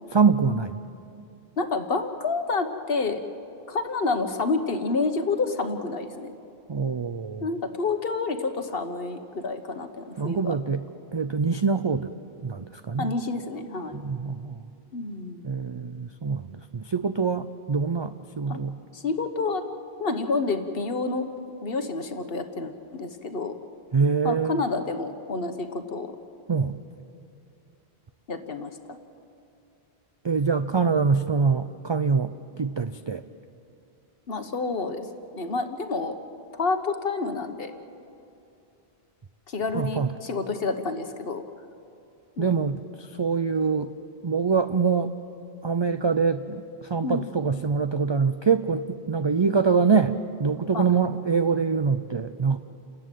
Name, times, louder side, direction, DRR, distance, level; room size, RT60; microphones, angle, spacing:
voice 1, 0.1-0.8 6.7-7.5 10.2-10.8 11.1-12.1 12.4-13.1 13.9-14.6 15.4-18.8 23.9-24.6 26.5-26.8 30.2-33.2 39.7-40.1 42.4-43.9 44.2-45.1 45.6-52.6, right 5 dB, 35° right, 10 dB, 0.4 m, -24 dB
voice 2, 1.6-3.2 3.7-6.3 7.4-10.6 13.0-13.9 14.9-15.5 18.5-18.6 18.9-19.6 20.0-21.3 21.6-23.5 24.2-26.1 28.3-28.7 34.3-35.1 35.3-36.1 36.5-37.7 39.5-41.4 42.4-42.7 47.0-47.3 50.7-50.8, left 3 dB, 65° left, 7 dB, 1.4 m, -29 dB
29.0 x 13.5 x 9.1 m, 2.7 s
omnidirectional pair, 1.1 m